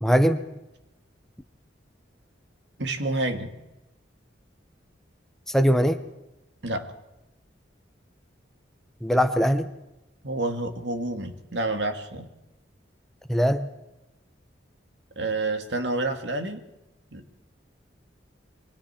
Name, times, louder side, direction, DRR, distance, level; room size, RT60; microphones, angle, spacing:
voice 1, 0.0-0.4 5.5-6.0 9.0-9.7 13.3-13.7, equal, ahead, 8 dB, 0.9 m, -21 dB
voice 2, 2.8-3.5 6.6-6.9 10.2-12.3 15.2-16.6 17.1-17.2, right 2 dB, 65° right, 6 dB, 2.2 m, -29 dB
29.0 x 23.5 x 4.5 m, 0.94 s
head